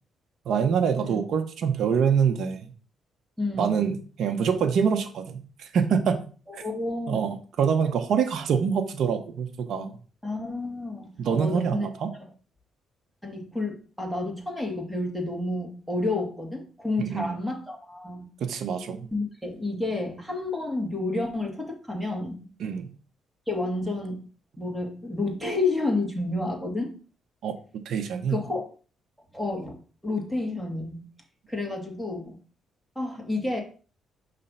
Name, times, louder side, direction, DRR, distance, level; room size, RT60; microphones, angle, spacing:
voice 1, 0.4-2.7 3.6-6.6 7.1-9.9 11.2-12.1 17.0-17.4 18.4-19.1 22.6-22.9 27.4-28.4, right 6 dB, 70° right, 6 dB, 0.9 m, -25 dB
voice 2, 3.4-3.8 6.5-7.2 10.2-11.9 12.2-12.3 13.2-18.3 19.1-22.5 23.5-24.3 24.6-26.9 28.3-28.7 29.3-31.1 31.5-32.4 33.0-33.6, left 2 dB, ahead, 0 dB, 1.9 m, -30 dB
5.5 x 3.3 x 5.4 m, 0.39 s
cardioid pair, 90°, 0 cm